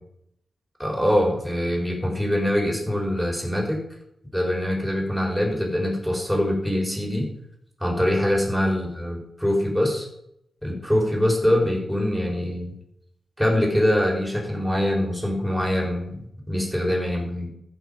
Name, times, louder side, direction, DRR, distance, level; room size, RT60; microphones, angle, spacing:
voice 1, 0.8-3.8 4.3-7.3 7.8-10.1 10.6-12.7 13.4-16.2 16.5-17.5, left 1 dB, ahead, 0 dB, 4.3 m, -23 dB
14.5 x 6.2 x 5.2 m, 0.77 s
cardioid pair, 80°, 0 cm